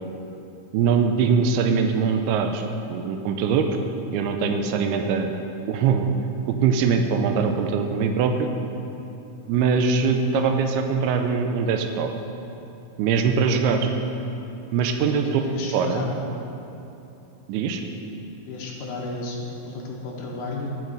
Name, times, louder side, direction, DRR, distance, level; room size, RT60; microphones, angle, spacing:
voice 1, 0.7-3.7 4.1-5.3 5.7-6.1 6.5-8.5 9.5-12.1 13.0-13.9 14.7-15.4 15.7-16.1 17.5-17.8, right 6 dB, 85° right, 5 dB, 2.5 m, -22 dB
voice 2, 15.1-16.2 18.5-20.8, left 2 dB, 70° left, -2 dB, 2.0 m, -32 dB
14.0 x 5.2 x 3.9 m, 2.8 s
omnidirectional pair, 4.6 m